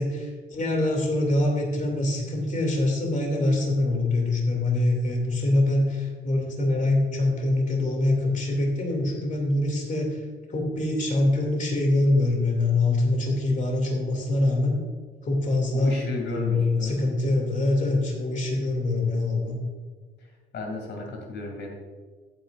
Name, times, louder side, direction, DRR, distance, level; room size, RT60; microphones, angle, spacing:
voice 1, 0.0-10.2 10.5-14.8 15.2-16.0 16.3-19.6, left 2 dB, 40° left, 1 dB, 2.5 m, -24 dB
voice 2, 15.7-17.0 20.5-21.7, left 2 dB, 65° left, 1 dB, 2.5 m, -33 dB
14.5 x 9.0 x 2.5 m, 1.5 s
cardioid pair, 90°, 20 cm